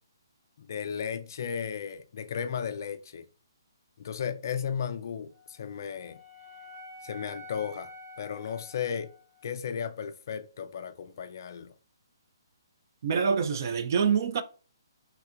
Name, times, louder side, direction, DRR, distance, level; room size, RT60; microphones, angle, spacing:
voice 1, 0.6-3.2 4.0-6.2 7.0-7.9 8.2-9.1 9.4-11.7, left 7 dB, 50° left, 0.3 m, -35 dB
Wind instrument woodwind instrument, 5.3-9.5, left 2 dB, 65° right, 1.5 m, -48 dB
voice 2, 13.0-14.4, right 6 dB, 45° right, 0.3 m, -26 dB
3.3 x 2.8 x 2.4 m
figure-of-eight pair, 135°, 2 cm